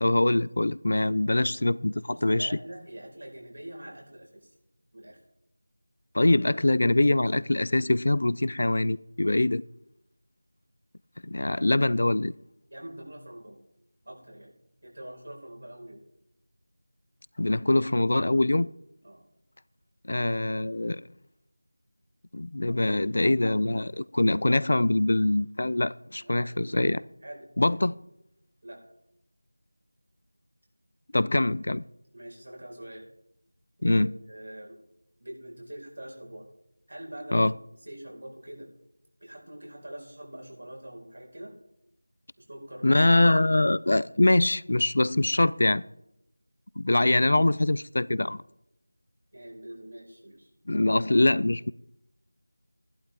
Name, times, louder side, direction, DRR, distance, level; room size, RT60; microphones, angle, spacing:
voice 1, 0.0-2.5 6.1-9.6 11.2-12.3 17.4-18.7 20.0-21.0 22.3-27.0 27.6-27.9 31.1-31.8 33.8-34.1 37.3-37.5 42.8-45.8 46.8-48.4 50.7-51.7, left 2 dB, 50° left, 0.3 m, -23 dB
voice 2, 2.1-4.5 4.9-5.2 12.7-13.6 14.0-14.5 14.8-16.0 19.0-19.2 26.2-26.7 27.2-27.5 28.6-28.8 32.1-33.0 33.8-34.0 34.3-34.8 35.2-36.5 36.9-37.4 37.8-38.7 39.2-41.5 42.4-42.9 49.3-50.5, right 1 dB, 65° right, 4.9 m, -44 dB
14.0 x 11.5 x 3.5 m
figure-of-eight pair, 175°, 0 cm